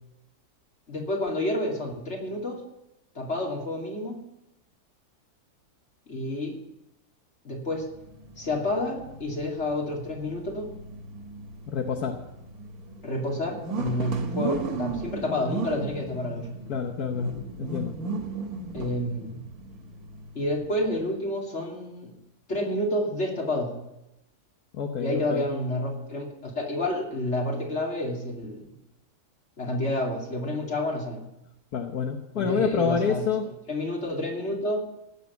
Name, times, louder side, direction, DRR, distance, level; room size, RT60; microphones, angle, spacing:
voice 1, 0.9-2.6 3.1-4.2 6.1-6.6 7.4-7.9 8.4-10.7 13.0-16.6 18.7-19.4 20.3-22.1 22.5-23.7 25.0-28.7 29.6-31.2 32.3-33.3 33.7-34.8, left 1 dB, 45° left, -1 dB, 3.0 m, -29 dB
sound 1, 7.8-21.1, right 3 dB, 75° right, 1.8 m, -37 dB
voice 2, 11.7-12.2 16.7-17.3 17.6-17.9 24.7-25.5 31.7-33.4, left 6 dB, 75° left, 4 dB, 1.5 m, -28 dB
17.0 x 7.0 x 8.1 m, 0.89 s
omnidirectional pair, 1.6 m